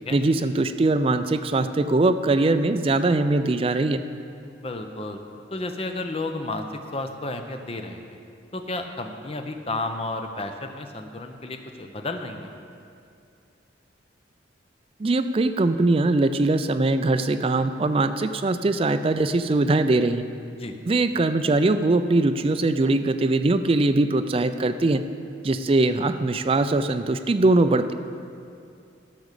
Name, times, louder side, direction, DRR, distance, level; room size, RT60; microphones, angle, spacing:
voice 1, 0.1-4.0 15.0-20.2 20.9-25.0 25.4-27.9, right 2 dB, 30° right, 9 dB, 0.4 m, -21 dB
voice 2, 4.4-5.2 5.5-6.7 6.9-8.2 8.5-12.5 20.5-20.7, left 2 dB, 30° left, 5 dB, 0.7 m, -32 dB
12.0 x 6.0 x 6.7 m, 2.5 s
head